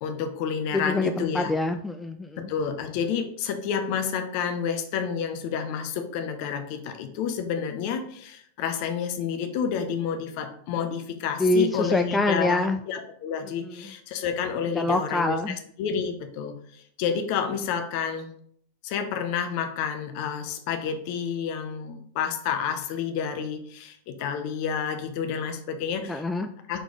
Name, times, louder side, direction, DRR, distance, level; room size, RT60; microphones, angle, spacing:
voice 1, 0.0-1.5 2.4-18.3 18.8-26.2 26.7-26.8, left 7 dB, 45° left, 7 dB, 0.8 m, -30 dB
voice 2, 0.7-2.5 11.4-12.8 13.6-13.8 14.7-15.6 26.1-26.5, left 2 dB, 10° left, 7 dB, 0.4 m, -25 dB
5.1 x 4.8 x 3.8 m, 0.63 s
figure-of-eight pair, 90°, 0 cm